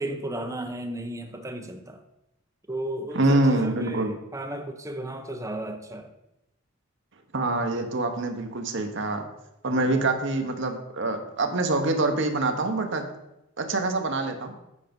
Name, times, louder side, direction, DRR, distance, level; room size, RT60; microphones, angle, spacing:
voice 1, 0.0-2.0 2.7-6.1 9.7-10.0, right 1 dB, 15° right, 4 dB, 0.8 m, -34 dB
voice 2, 3.1-4.1 7.3-9.3 9.6-13.0 13.6-14.5, right 2 dB, 60° right, 5 dB, 1.1 m, -25 dB
8.4 x 5.1 x 5.2 m, 0.88 s
head